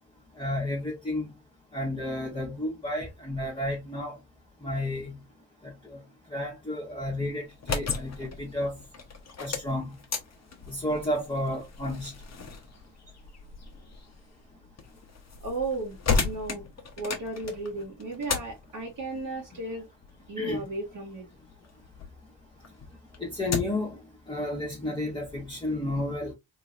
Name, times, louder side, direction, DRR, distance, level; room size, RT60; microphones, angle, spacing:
voice 1, 0.4-1.3 1.7-4.2 4.6-5.2 5.6-5.7 6.3-8.7 9.4-9.9 10.7-12.1 20.4-20.6 23.2-23.9 24.3-26.3, left 1 dB, 10° left, 1.4 m, -31 dB
sound 1, 7.5-22.2 22.6-23.9, left 5 dB, 35° left, 1.0 m, -35 dB
voice 2, 15.4-16.0 16.2-16.7 17.0-19.8 20.3-21.3, right 2 dB, 45° right, 1.3 m, -34 dB
3.3 x 2.9 x 2.5 m
supercardioid pair, 55°, 44 cm